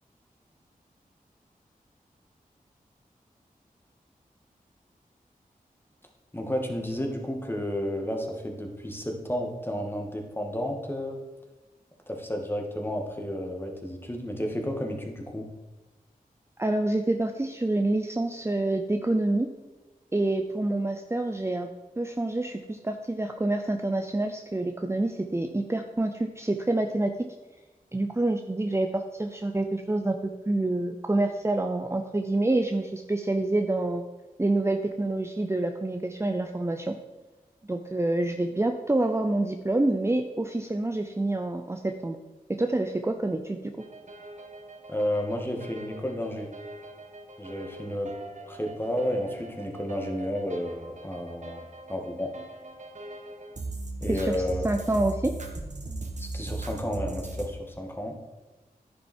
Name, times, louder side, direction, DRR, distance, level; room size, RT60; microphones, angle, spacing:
voice 1, 6.3-11.2 12.1-15.5 44.9-46.5 47.4-48.1 48.4-52.3 54.0-54.7 56.2-58.2, equal, 15° left, 2 dB, 2.1 m, -32 dB
voice 2, 16.6-19.5 20.1-21.7 22.0-27.3 27.9-34.0 34.4-36.9 37.7-42.2 42.5-43.6 54.1-54.4 54.6-55.3, right 2 dB, 20° right, 5 dB, 0.7 m, -27 dB
sound 1, 43.8-57.5, right 2 dB, 55° right, 1.6 m, -39 dB
10.5 x 10.0 x 4.5 m, 1.2 s
wide cardioid pair, 70°, 15 cm